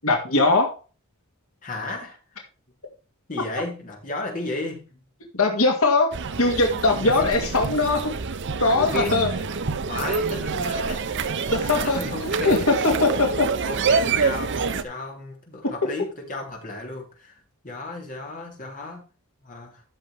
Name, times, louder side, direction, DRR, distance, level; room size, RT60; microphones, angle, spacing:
voice 1, 0.0-0.8 5.3-6.1 6.4-8.1 8.6-9.3 11.5-12.7 13.0-13.5, left 3 dB, 65° left, 2.2 m, -21 dB
voice 2, 1.6-2.4 3.3-5.0 7.0-7.3 8.7-9.5 9.8-12.7 13.6-19.1 19.4-19.8, left 2 dB, 35° left, 3.5 m, -34 dB
sound 1, 6.1-14.8, right 4 dB, 55° right, 0.7 m, -27 dB
13.5 x 6.7 x 3.5 m
head